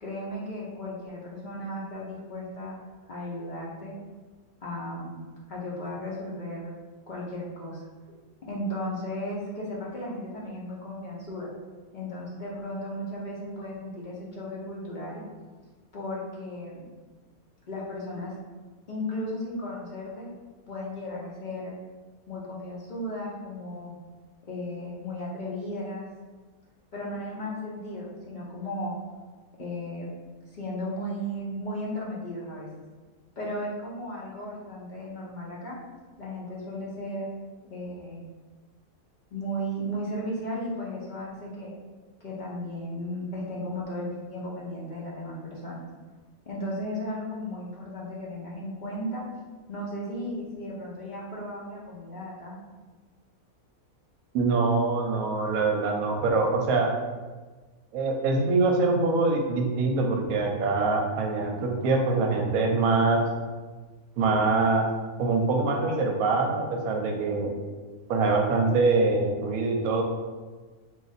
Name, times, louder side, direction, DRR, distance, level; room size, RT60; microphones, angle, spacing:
voice 1, 0.0-2.7 3.1-3.9 4.6-5.2 5.5-6.8 7.1-7.9 8.5-11.5 11.9-15.2 15.9-16.8 17.7-18.3 18.9-20.3 20.7-21.8 22.3-23.9 24.5-26.1 26.9-29.0 29.6-30.1 30.5-32.7 33.4-35.8 36.2-37.3 37.7-38.2 39.3-41.7 42.2-45.8 46.5-49.2 49.7-52.6, equal, 55° left, -5 dB, 0.5 m, -35 dB
voice 2, 54.3-56.9 57.9-63.2 64.2-64.9 65.2-67.5 68.1-70.0, right 3 dB, 75° right, 1 dB, 1.0 m, -24 dB
2.6 x 2.5 x 3.9 m, 1.3 s
omnidirectional pair, 1.6 m